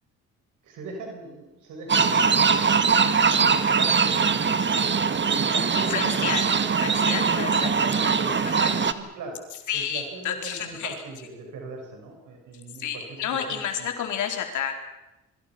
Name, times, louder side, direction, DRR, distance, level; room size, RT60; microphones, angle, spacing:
voice 1, 0.6-2.5 3.3-6.5 7.1-13.0 13.3-13.9, right 3 dB, 80° right, 2 dB, 6.2 m, -39 dB
sound 1, 1.9-8.9, right 5 dB, 40° right, 1.8 m, -22 dB
voice 2, 5.7-6.4 6.8-7.7 8.0-8.1 8.5-8.8 9.7-10.9 12.8-14.7, left 8 dB, 75° left, 4 dB, 4.4 m, -30 dB
27.0 x 23.5 x 6.1 m, 0.99 s
cardioid pair, 90°, 30 cm